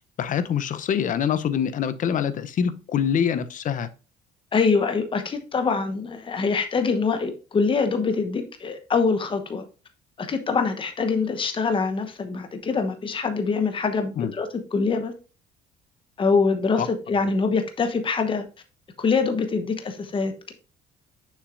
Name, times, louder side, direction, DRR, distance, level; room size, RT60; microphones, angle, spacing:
voice 1, 0.2-3.9 14.2-14.3 16.8-16.9, left 8 dB, 50° left, 0.7 m, -25 dB
voice 2, 4.5-9.7 10.2-15.1 16.2-18.4 19.0-20.5, left 4 dB, 30° left, 1.0 m, -24 dB
6.6 x 6.3 x 2.6 m
cardioid pair, 110°, 17 cm